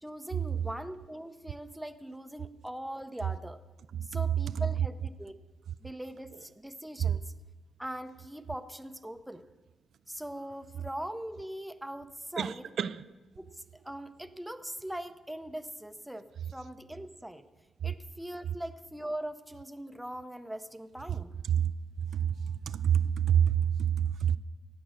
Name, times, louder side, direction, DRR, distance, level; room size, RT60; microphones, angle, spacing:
voice 1, 0.0-3.6 4.0-5.4 5.8-7.2 7.8-9.5 10.1-12.7 13.4-17.5 17.8-21.3, right 1 dB, 5° right, 0.7 m, -41 dB
voice 2, 12.4-12.9 22.1-22.2 22.7-23.5 23.8-24.4, right 9 dB, 65° right, 0.4 m, -26 dB
15.0 x 9.2 x 6.4 m
cardioid pair, 110°, 0 cm